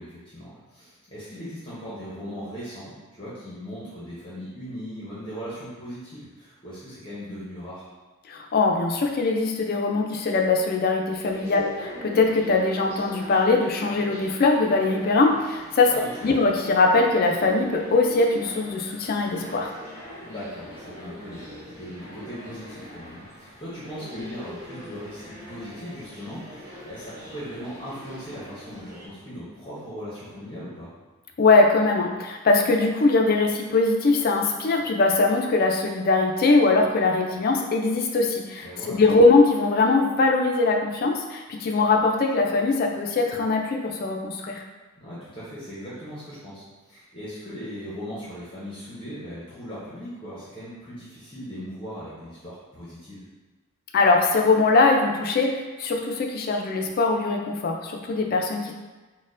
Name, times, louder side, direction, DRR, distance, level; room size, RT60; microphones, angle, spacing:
voice 1, 0.0-7.9 15.9-16.3 20.2-30.9 38.6-39.0 45.0-53.2, equal, 20° left, -9 dB, 0.7 m, -39 dB
voice 2, 8.3-15.9 16.2-19.7 31.4-44.6 53.9-58.7, left 3 dB, 45° left, 2 dB, 0.3 m, -21 dB
sound 1, 11.1-29.1, left 1 dB, 45° right, 1.0 m, -42 dB
4.2 x 2.1 x 2.5 m, 1.3 s
head